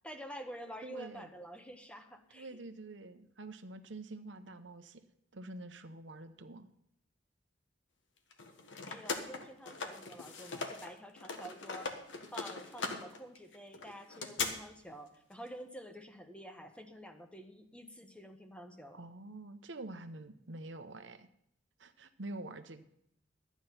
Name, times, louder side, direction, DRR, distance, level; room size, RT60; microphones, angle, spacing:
voice 1, 0.0-2.5 8.9-11.9 12.3-19.0, equal, 5° left, 6 dB, 1.0 m, -49 dB
voice 2, 0.8-1.3 2.3-5.0 5.3-6.7 18.9-21.3 21.8-22.8, right 2 dB, 80° right, 9 dB, 0.9 m, -47 dB
sound 1, 8.3-10.9 11.2-14.5, left 4 dB, 85° left, 1.5 m, -40 dB
12.5 x 9.4 x 5.8 m, 0.72 s
head